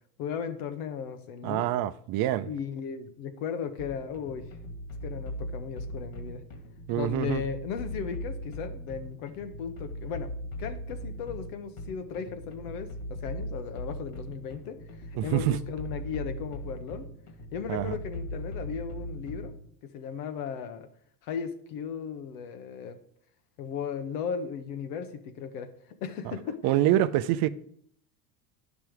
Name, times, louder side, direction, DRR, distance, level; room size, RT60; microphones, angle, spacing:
voice 1, 0.2-1.7 2.5-4.5 5.0-6.4 6.9-10.3 10.6-14.8 15.1-17.0 17.5-19.5 19.8-20.9 21.2-23.0 23.6-25.7 26.0-26.6, left 7 dB, 75° left, 1.4 m, -36 dB
voice 2, 1.4-2.5 6.9-7.4 15.2-15.6 17.7-18.0 26.2-26.3 26.6-27.5, right 13 dB, 50° right, 0.6 m, -26 dB
sound 1, 3.8-19.7, equal, 45° left, 2.3 m, -39 dB
10.5 x 6.0 x 4.7 m
supercardioid pair, 95°, 46 cm